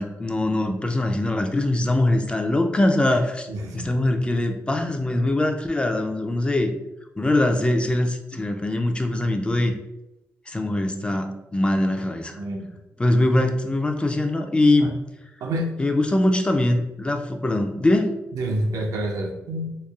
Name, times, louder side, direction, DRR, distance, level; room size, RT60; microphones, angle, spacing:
voice 1, 0.0-3.5 3.7-6.7 7.2-9.8 10.5-12.4 13.0-15.0 15.8-18.1, left 1 dB, 15° left, 5 dB, 0.3 m, -22 dB
voice 2, 3.5-3.9 12.3-12.7 14.8-14.9 15.4-15.8 18.3-19.8, right 1 dB, 80° right, 2 dB, 0.4 m, -28 dB
3.0 x 2.0 x 2.3 m, 0.94 s
cardioid pair, 60°, 6 cm